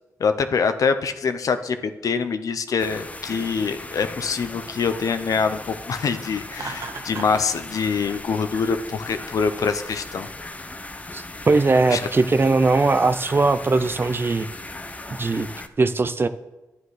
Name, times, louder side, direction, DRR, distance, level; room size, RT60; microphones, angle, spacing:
voice 1, 0.2-10.3 11.9-12.0, left 5 dB, 70° left, 9 dB, 0.6 m, -24 dB
sound 1, 2.8-15.7, left 2 dB, 25° left, 0.7 m, -38 dB
Laughter, 6.5-7.5, right 4 dB, 65° right, 1.3 m, -34 dB
voice 2, 11.1-14.5 15.2-15.5 15.8-16.3, right 3 dB, 40° right, 11 dB, 0.5 m, -20 dB
11.0 x 9.3 x 3.2 m, 1.1 s
cardioid pair, 55°, 6 cm